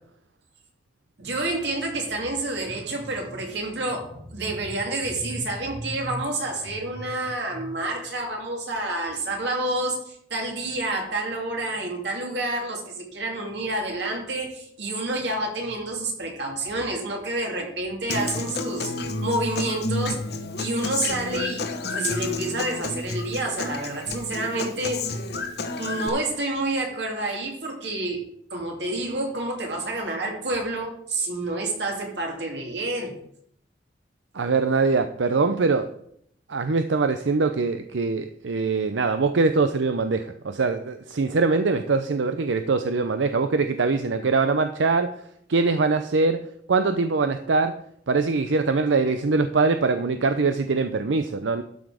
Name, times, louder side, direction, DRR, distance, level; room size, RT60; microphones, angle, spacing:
voice 1, 1.2-20.3 20.6-25.2 25.8-33.2, right 2 dB, 65° right, 1 dB, 2.7 m, -29 dB
Human voice / Acoustic guitar, 18.1-26.1, left 3 dB, 60° left, 1.1 m, -30 dB
voice 2, 34.3-35.9 36.5-45.1 45.5-46.4 46.7-47.7 48.1-51.6, right 4 dB, 90° right, 9 dB, 0.6 m, -23 dB
12.0 x 6.0 x 5.0 m, 0.69 s
head